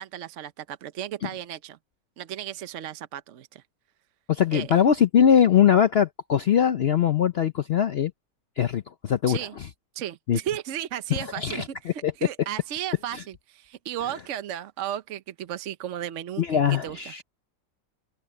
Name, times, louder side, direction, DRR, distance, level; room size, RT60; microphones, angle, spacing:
voice 1, 0.0-1.8 2.2-3.6 4.5-4.7 9.3-9.5 9.9-17.1, right 11 dB, 60° right, 0.8 m, -34 dB
voice 2, 4.3-8.1 8.6-9.4 10.3-10.4 11.4-12.1 13.1-13.2 16.4-17.2, left 8 dB, 85° left, 0.5 m, -21 dB
open air
omnidirectional pair, 1.9 m